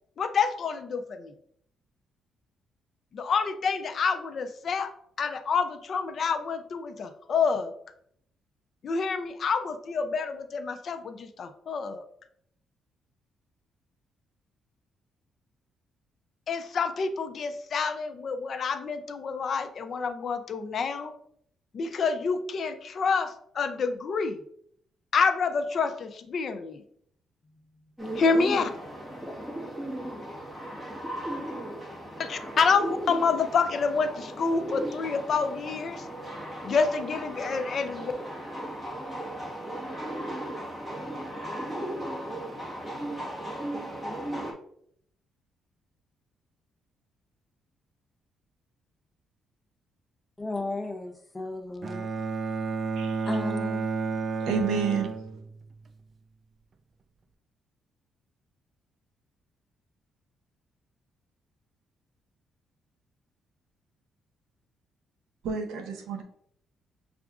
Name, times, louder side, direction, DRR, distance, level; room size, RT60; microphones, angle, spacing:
voice 1, 0.2-1.3 3.1-4.9 5.2-7.7 8.8-12.0 16.5-21.1 21.7-24.4 25.1-26.8 28.2-28.7 32.2-36.0 36.6-38.1, left 5 dB, 55° left, 0.4 m, -28 dB
sound 1, 28.0-44.5, right 1 dB, ahead, 1.3 m, -36 dB
voice 2, 50.4-52.1 53.3-53.9, left 2 dB, 20° left, 0.7 m, -34 dB
Bowed string instrument, 51.8-55.9, right 5 dB, 45° right, 0.3 m, -31 dB
voice 3, 54.4-55.1 65.4-66.2, right 5 dB, 85° right, 0.6 m, -29 dB
6.8 x 2.4 x 2.4 m
cardioid pair, 90°, 0 cm